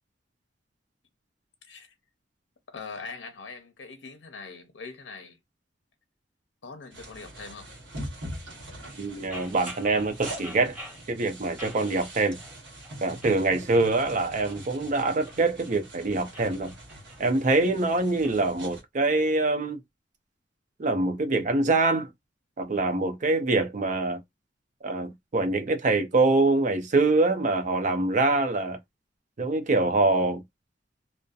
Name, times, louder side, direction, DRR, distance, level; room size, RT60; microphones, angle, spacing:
voice 1, 2.7-5.4 6.6-7.7, left 4 dB, 80° left, 0.6 m, -42 dB
sound 1, 6.9-18.8, right 1 dB, 85° right, 1.1 m, -43 dB
voice 2, 9.0-10.8 11.1-12.4 13.0-16.7 17.2-19.8 20.8-22.1 22.6-24.2 24.8-28.8 29.4-30.4, right 3 dB, 45° right, 0.5 m, -24 dB
sound 2, 9.3-11.1 11.6-12.6 12.8-13.4 13.9-15.7 16.2-18.4, equal, 10° right, 1.0 m, -46 dB
2.6 x 2.0 x 2.3 m
head